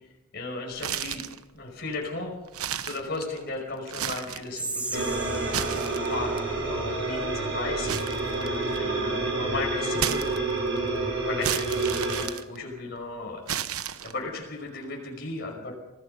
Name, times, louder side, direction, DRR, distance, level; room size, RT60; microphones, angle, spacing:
voice 1, 0.3-1.3 1.5-2.3 2.8-6.3 6.6-7.9 8.8-10.3 11.2-12.0 12.5-13.8 14.0-15.7, left 3 dB, 50° left, -1 dB, 5.4 m, -35 dB
sound 1, 0.7-1.4 1.9-2.0 2.5-3.5 3.8-4.5 5.3-6.4 7.9-8.9 10.0-10.8 11.4-13.0 13.5-14.4, right 9 dB, 90° right, 1.1 m, -32 dB
Whispering, 4.5-7.7, right 2 dB, 5° right, 1.2 m, -38 dB
sound 2, 4.9-12.2, right 2 dB, 55° right, 7.2 m, -28 dB
26.0 x 18.5 x 5.5 m, 1.0 s
head